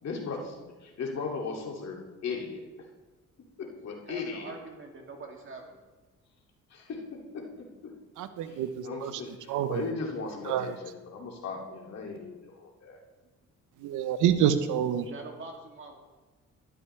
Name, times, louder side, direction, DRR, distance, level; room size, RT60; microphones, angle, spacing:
voice 1, 0.0-2.6 3.6-4.5 6.7-7.9 8.4-8.6 8.8-13.0, left 4 dB, 60° left, 0 dB, 2.4 m, -37 dB
voice 2, 4.0-5.8 13.7-13.9 15.0-16.0, right 3 dB, 40° right, 1 dB, 2.4 m, -44 dB
voice 3, 8.2-9.2 9.5-9.8 10.4-10.7 13.8-15.1, right 9 dB, 85° right, 11 dB, 0.8 m, -27 dB
12.0 x 11.5 x 3.2 m, 1.3 s
cardioid pair, 90°, 30 cm